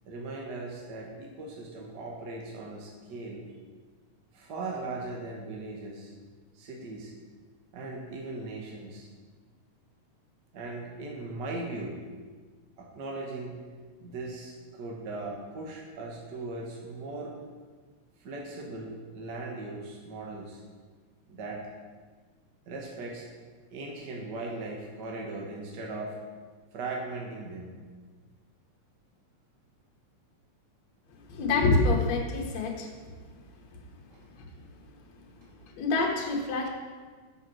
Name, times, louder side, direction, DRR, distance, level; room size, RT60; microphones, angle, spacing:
voice 1, 0.0-3.4 4.3-6.1 6.5-7.1 7.7-9.1 10.5-12.0 12.8-13.6 14.0-17.3 18.2-20.6 21.3-21.6 22.7-23.3 23.7-26.2 26.7-27.7 34.1-34.2, right 2 dB, 60° right, -1 dB, 1.1 m, -38 dB
voice 2, 31.3-32.9 34.4-34.5 35.8-36.7, left 3 dB, 65° left, 0 dB, 2.3 m, -26 dB
7.3 x 6.1 x 6.1 m, 1.5 s
omnidirectional pair, 3.4 m